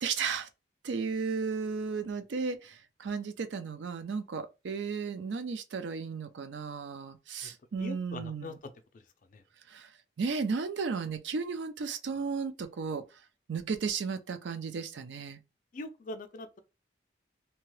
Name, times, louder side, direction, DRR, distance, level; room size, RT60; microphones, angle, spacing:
voice 1, 0.0-0.5 0.8-8.6 9.7-9.9 10.2-13.0 13.5-15.4, right 5 dB, 75° right, 0.4 m, -34 dB
voice 2, 7.8-8.5 9.3-9.4 15.7-16.6, left 2 dB, 45° left, 0.4 m, -41 dB
2.8 x 2.2 x 3.1 m
head